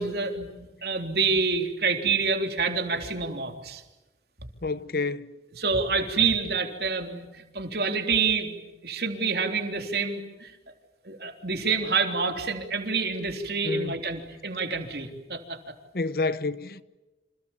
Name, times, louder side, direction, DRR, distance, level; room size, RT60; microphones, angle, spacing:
voice 1, 0.0-3.8 5.6-8.6 8.8-10.5 11.1-15.8, right 4 dB, 60° right, 3.6 m, -27 dB
voice 2, 4.6-5.3 13.6-14.0 15.9-16.8, left 3 dB, 55° left, 0.9 m, -29 dB
29.0 x 27.0 x 7.3 m
head